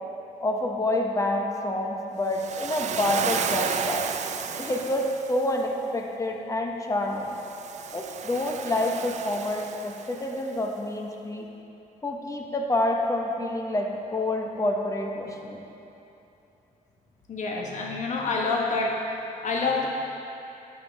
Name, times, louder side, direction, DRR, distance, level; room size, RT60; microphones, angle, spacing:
voice 1, 0.4-4.1 4.6-7.4 7.9-11.5 12.0-15.6, left 1 dB, 20° left, 1 dB, 1.0 m, -28 dB
Waves surf, 2.3-5.5 7.3-10.4, right 7 dB, 50° right, 0.4 m, -33 dB
voice 2, 17.3-19.0 19.4-19.9, left 3 dB, 55° left, -1 dB, 1.1 m, -27 dB
10.5 x 7.2 x 3.5 m, 2.9 s
cardioid pair, 100°, 15 cm